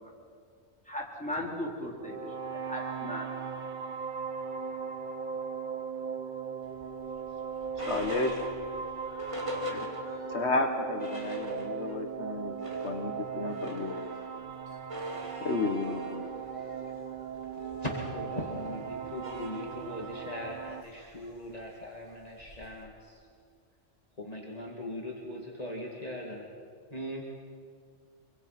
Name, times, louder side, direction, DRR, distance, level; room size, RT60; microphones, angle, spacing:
voice 1, 0.9-2.3 2.6-3.3, left 1 dB, 5° left, -3 dB, 4.4 m, -37 dB
sound 1, 2.0-20.8, right 6 dB, 45° right, 1.1 m, -38 dB
sound 2, 6.8-10.4 10.7-10.8 11.0-12.1 12.4-22.8, equal, 25° right, 2.8 m, -42 dB
voice 2, 7.8-8.4 9.7-9.9 10.3-12.6 12.8-14.0 15.4-16.2, left 3 dB, 65° left, 4 dB, 1.6 m, -32 dB
voice 3, 17.5-23.2 24.2-26.5 26.9-27.2, left 1 dB, 30° left, -2 dB, 2.4 m, -39 dB
25.0 x 25.0 x 5.9 m, 2.2 s
omnidirectional pair, 1.3 m